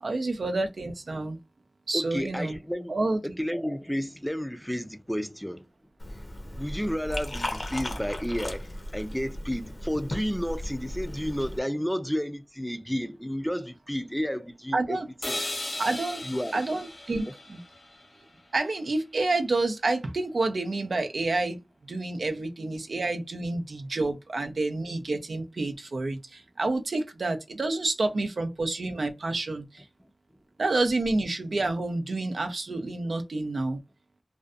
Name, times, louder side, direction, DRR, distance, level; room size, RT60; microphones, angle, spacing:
voice 1, 0.0-1.4 1.9-2.6 2.9-3.2 14.7-15.1 15.8-16.2 16.5-17.6 18.5-21.6 21.9-29.8 30.6-33.8, right 2 dB, 85° right, 0.4 m, -29 dB
voice 2, 1.9-3.0 3.2-5.7 6.1-6.2 6.6-15.4 16.2-16.6, equal, ahead, 0.3 m, -31 dB
Liquid, 6.0-11.6, left 1 dB, 55° left, 0.6 m, -36 dB
sound 1, 15.2-19.2, left 1 dB, 80° left, 1.0 m, -38 dB
2.5 x 2.1 x 2.4 m
wide cardioid pair, 45°, 0 cm